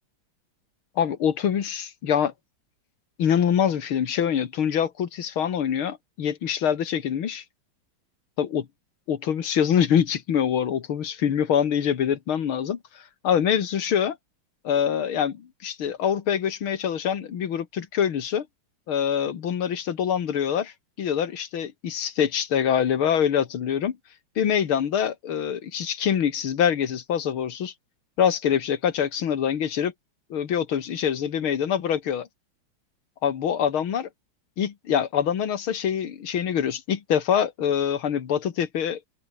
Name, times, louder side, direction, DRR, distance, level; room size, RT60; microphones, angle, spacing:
voice 1, 1.0-2.3 3.2-7.4 8.4-8.7 9.1-14.2 14.6-18.5 18.9-24.0 24.4-27.7 28.2-29.9 30.3-32.3 33.2-34.1 34.6-39.0, left 8 dB, 70° left, 2.5 m, -25 dB
omnidirectional pair, 2.4 m